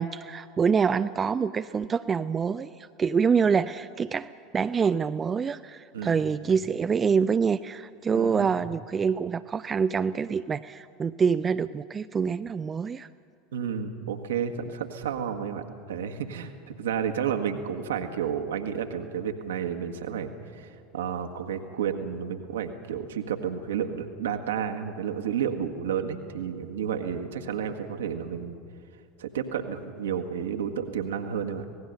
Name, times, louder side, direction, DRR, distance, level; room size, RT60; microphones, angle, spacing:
voice 1, 0.0-2.7 3.0-13.1, right 6 dB, 25° right, 12 dB, 0.5 m, -26 dB
voice 2, 8.1-8.5 13.5-28.6 29.2-31.6, right 8 dB, 65° right, 6 dB, 1.7 m, -31 dB
26.0 x 18.5 x 6.8 m, 2.3 s
figure-of-eight pair, 75°, 0 cm